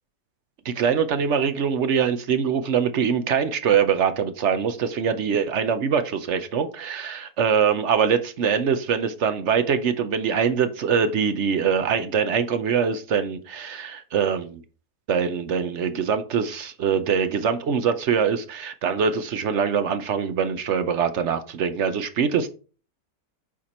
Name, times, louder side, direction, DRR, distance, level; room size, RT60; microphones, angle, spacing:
voice 1, 0.6-14.6 15.1-22.5, right 7 dB, 60° right, 0.7 m, -23 dB
7.3 x 4.4 x 4.2 m
omnidirectional pair, 1.8 m